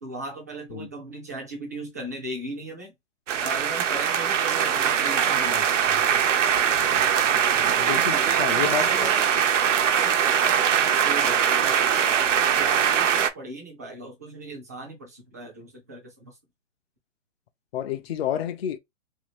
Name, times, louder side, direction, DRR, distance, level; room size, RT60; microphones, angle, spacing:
voice 1, 0.0-2.9 3.4-6.3 8.1-9.4 9.8-16.4, right 2 dB, 15° right, 0.4 m, -38 dB
sound 1, 3.3-13.3, right 8 dB, 75° right, 0.7 m, -22 dB
voice 2, 7.8-9.1 17.7-18.8, left 10 dB, 55° left, 0.5 m, -29 dB
2.8 x 2.5 x 2.9 m
hypercardioid pair, 155°, 37 cm